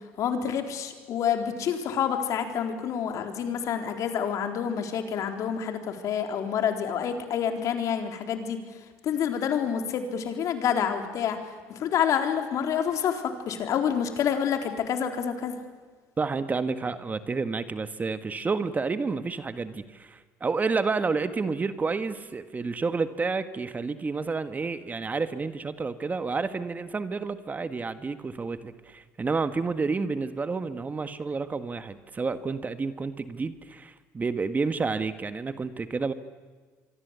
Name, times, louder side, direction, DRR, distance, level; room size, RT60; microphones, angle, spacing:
voice 1, 0.2-8.6 9.0-11.4 11.7-15.6, left 8 dB, 60° left, 6 dB, 4.0 m, -28 dB
voice 2, 16.2-36.1, right 4 dB, 25° right, 11 dB, 1.7 m, -30 dB
25.5 x 25.0 x 8.3 m, 1.4 s
supercardioid pair, 85°, 6 cm